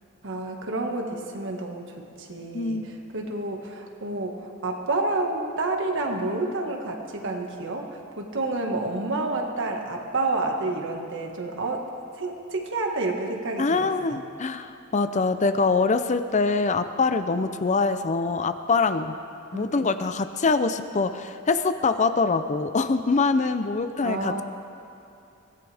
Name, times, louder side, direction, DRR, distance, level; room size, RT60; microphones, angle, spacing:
voice 1, 0.2-11.8 12.2-14.2 19.5-19.9 24.0-24.4, right 2 dB, 60° right, 2 dB, 1.8 m, -29 dB
voice 2, 2.5-2.9 13.6-19.1 19.5-24.4, left 4 dB, 35° left, 10 dB, 0.5 m, -24 dB
23.5 x 17.5 x 3.5 m, 2.7 s
head